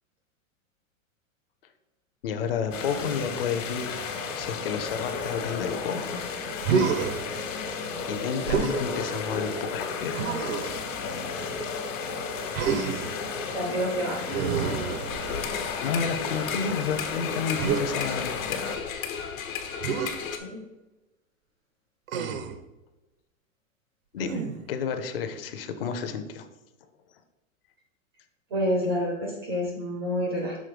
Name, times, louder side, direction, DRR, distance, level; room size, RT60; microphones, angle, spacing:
voice 1, 2.2-3.9 4.3-6.2 8.1-10.4 15.4-18.6 24.1-26.5, left 6 dB, 45° left, 8 dB, 0.6 m, -31 dB
sound 1, 2.7-18.8, left 4 dB, 65° left, 1.3 m, -33 dB
Human voice, 6.6-7.2 8.5-8.8 10.1-10.8 12.5-13.2 14.3-15.5 17.6-17.9 19.8-20.1 22.1-22.6 24.2-24.7, right 6 dB, 90° right, 0.9 m, -28 dB
voice 2, 13.5-14.4 20.4-20.6 28.5-30.6, equal, 20° right, 0 dB, 0.4 m, -28 dB
sound 2, 15.1-20.4, left 7 dB, 85° left, 1.3 m, -34 dB
6.4 x 3.8 x 5.0 m, 1.0 s
supercardioid pair, 175°, 40 cm